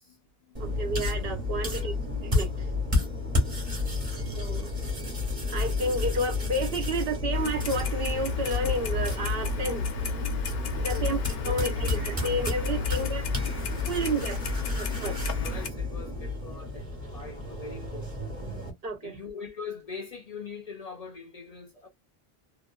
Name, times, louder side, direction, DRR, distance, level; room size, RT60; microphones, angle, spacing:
voice 1, 0.0-0.6 1.5-1.9 3.9-4.2 10.9-11.9 15.4-16.9 17.1-18.1 19.0-21.9, left 4 dB, 45° left, 0.6 m, -42 dB
sound 1, 0.5-18.7, left 3 dB, 30° right, 1.3 m, -31 dB
voice 2, 0.6-1.9 2.2-2.7 4.3-4.7 5.5-9.9 10.8-13.3 13.8-14.4 14.8-15.2 18.8-19.2, right 1 dB, 65° right, 1.1 m, -31 dB
Clock, 7.3-15.7, left 3 dB, 70° left, 0.9 m, -33 dB
2.8 x 2.5 x 2.2 m
omnidirectional pair, 1.1 m